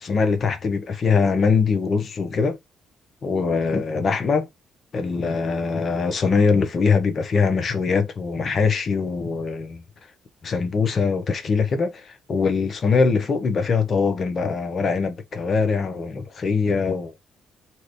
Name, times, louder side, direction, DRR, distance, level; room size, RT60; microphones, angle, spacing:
voice 1, 0.0-2.6 3.2-4.5 4.9-9.8 10.4-17.2, left 5 dB, 50° left, 0.7 m, -22 dB
2.8 x 2.5 x 3.3 m
cardioid pair, 90°, 0 cm